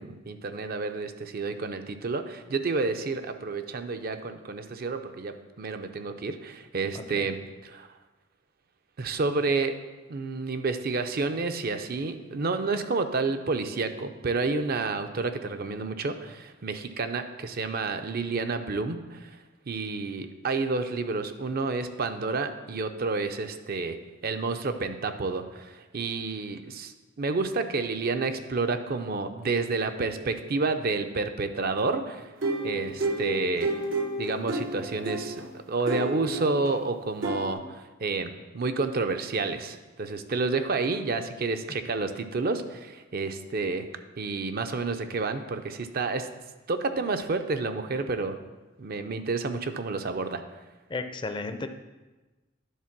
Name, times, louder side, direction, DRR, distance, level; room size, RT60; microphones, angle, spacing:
voice 1, 0.0-7.4 7.6-7.9 9.0-9.8 10.1-19.4 19.7-24.0 24.2-32.3 32.6-33.7 34.2-43.9 44.2-46.3 46.7-48.4 48.8-50.4, right 3 dB, 50° right, 8 dB, 0.5 m, -30 dB
sound 1, 32.4-35.4 35.9-36.7 37.2-37.5, right 2 dB, 85° right, 1.0 m, -31 dB
voice 2, 50.9-51.7, left 3 dB, 25° left, 8 dB, 0.5 m, -33 dB
10.5 x 3.8 x 5.9 m, 1.2 s
head